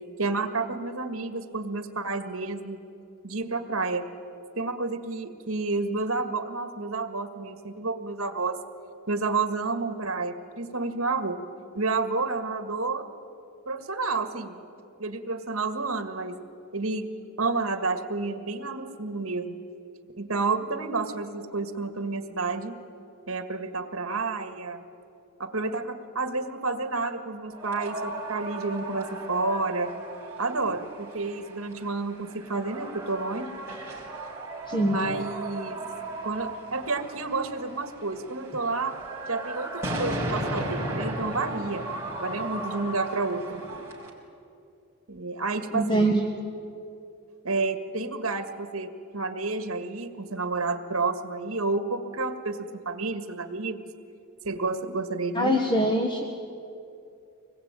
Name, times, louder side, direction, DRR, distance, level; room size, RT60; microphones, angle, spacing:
voice 1, 0.2-2.8 3.2-4.0 4.6-8.6 9.1-11.4 11.8-13.1 13.7-14.6 15.0-16.4 16.7-17.1 17.4-19.6 20.2-22.7 23.3-24.8 25.4-29.9 30.4-33.5 34.9-35.8 36.2-38.9 39.3-41.9 42.2-43.6 45.1-46.1 47.4-53.8 54.4-55.6, right 3 dB, 65° right, 8 dB, 1.8 m, -30 dB
sound 1, 27.5-44.1, right 1 dB, 10° right, 4.4 m, -36 dB
voice 2, 45.7-46.2 55.3-56.2, right 1 dB, 20° left, 3 dB, 1.4 m, -23 dB
25.0 x 21.0 x 9.0 m, 2.6 s
head